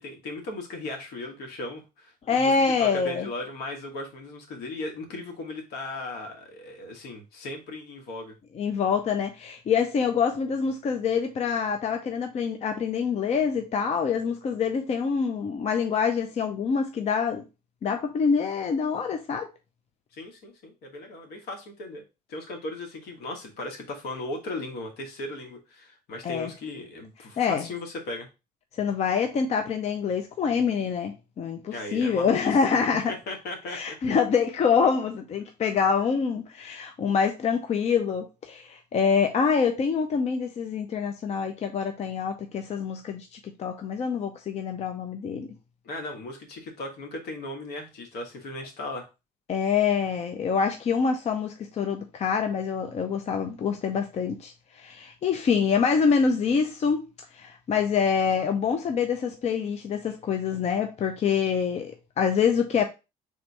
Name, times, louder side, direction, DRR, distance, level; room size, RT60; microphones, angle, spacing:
voice 1, 0.0-2.5 2.8-8.3 20.1-22.0 22.3-28.3 31.7-32.6 33.1-34.0 45.8-49.1, left 2 dB, 70° left, 1.3 m, -37 dB
voice 2, 2.3-3.3 8.6-17.4 17.8-19.5 26.2-26.5 27.4-27.7 28.8-33.1 33.7-45.5 49.5-57.0 57.3-62.8, left 6 dB, 40° left, 0.5 m, -26 dB
3.5 x 2.7 x 4.5 m
cardioid pair, 110°, 17 cm